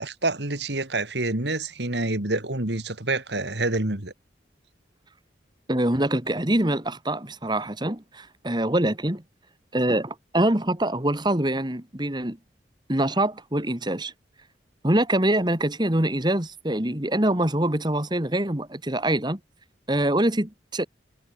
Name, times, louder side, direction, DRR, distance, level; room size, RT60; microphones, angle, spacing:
voice 1, 0.0-4.1, right 2 dB, 65° right, 2.9 m, -27 dB
voice 2, 5.7-9.2 9.7-12.4 12.9-14.1 14.8-19.4 19.9-20.9, right 1 dB, 25° right, 2.1 m, -24 dB
head